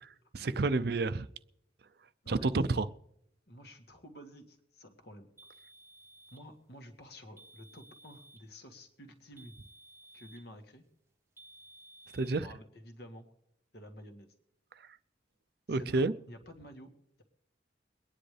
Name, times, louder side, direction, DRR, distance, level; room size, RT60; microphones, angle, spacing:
voice 1, 0.3-1.3 2.3-2.9 12.1-12.5 15.7-16.1, right 3 dB, 55° right, 14 dB, 0.5 m, -29 dB
voice 2, 3.5-5.3 6.3-9.5 10.1-10.8 12.2-13.2 13.7-14.3 15.7-16.9, equal, 60° left, 5 dB, 1.8 m, -51 dB
sound 1, 5.4-6.5 7.4-8.5 9.4-10.5 11.4-12.4, right 1 dB, 15° right, 0.7 m, -56 dB
23.0 x 10.0 x 3.3 m, 0.76 s
head